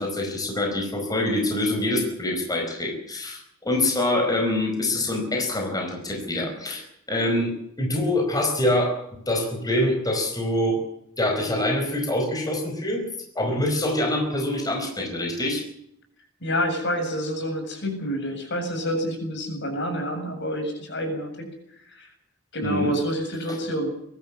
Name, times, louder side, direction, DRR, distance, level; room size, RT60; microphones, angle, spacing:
voice 1, 0.0-7.5 7.8-8.9 9.3-10.8 11.2-13.1 13.3-15.6 22.6-22.9, left 1 dB, 20° left, 2 dB, 4.8 m, -25 dB
voice 2, 16.4-21.5 21.7-22.1 22.5-23.9, equal, 60° left, 5 dB, 7.6 m, -28 dB
23.0 x 12.5 x 9.9 m, 0.73 s
head